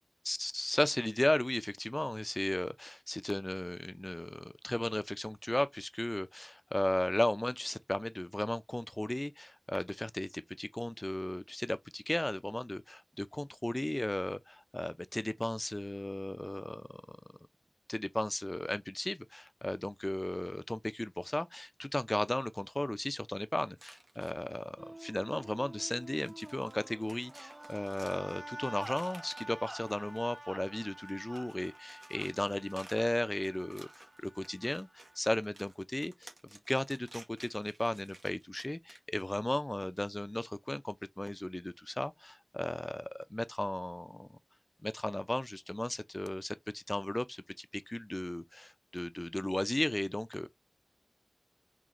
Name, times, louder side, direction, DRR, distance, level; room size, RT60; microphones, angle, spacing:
voice 1, 0.3-17.2 17.9-44.3 44.8-50.5, left 1 dB, 25° left, 0.4 m, -35 dB
sound 1, 23.8-24.6 25.5-25.6 26.0-30.5 30.9-39.4, right 2 dB, 80° right, 1.0 m, -56 dB
sound 2, 24.8-35.2, right 1 dB, 40° right, 0.6 m, -48 dB
3.8 x 2.5 x 3.0 m
wide cardioid pair, 60°, 0 cm